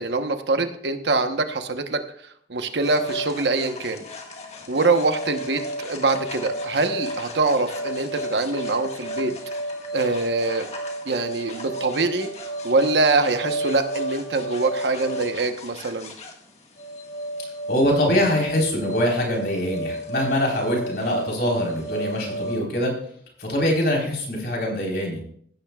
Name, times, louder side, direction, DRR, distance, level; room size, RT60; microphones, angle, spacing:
voice 1, 0.0-2.0 2.5-4.0 4.7-9.4 9.9-10.7 11.0-12.3 12.6-16.1, right 3 dB, 75° right, 7 dB, 1.0 m, -24 dB
sound 1, 2.8-22.6, right 1 dB, 35° left, 1.6 m, -32 dB
voice 2, 17.7-22.9 23.4-25.2, equal, 60° left, 0 dB, 4.1 m, -23 dB
16.5 x 12.0 x 2.4 m, 0.64 s
head